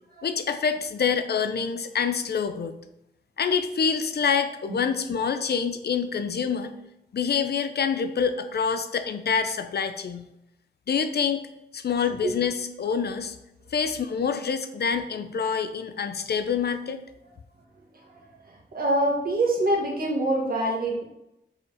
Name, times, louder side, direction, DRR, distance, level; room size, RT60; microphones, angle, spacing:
voice 1, 0.2-2.7 3.4-6.7 7.1-10.3 10.9-11.5 11.7-13.4 13.7-17.0, left 6 dB, 65° left, 9 dB, 0.6 m, -26 dB
voice 2, 18.7-21.0, right 1 dB, 55° right, -2 dB, 1.9 m, -24 dB
4.8 x 4.3 x 4.9 m, 0.84 s
wide cardioid pair, 85°, 18 cm